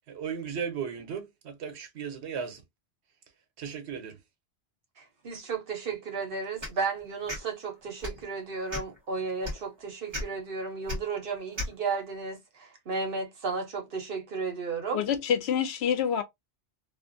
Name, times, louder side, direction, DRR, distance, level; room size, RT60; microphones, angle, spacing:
voice 1, 0.1-2.6 3.6-4.2, right 7 dB, 85° right, 1.0 m, -36 dB
voice 2, 5.0-15.0, right 4 dB, 60° right, 1.0 m, -34 dB
sound 1, 6.6-6.8 7.3-7.4 8.0-8.2 8.7-9.0 9.4-9.6 10.1-10.2 10.9-11.0 11.6-11.7, left 1 dB, 25° right, 1.0 m, -33 dB
voice 3, 14.9-16.2, left 8 dB, 75° left, 0.8 m, -27 dB
2.4 x 2.4 x 2.5 m
omnidirectional pair, 1.1 m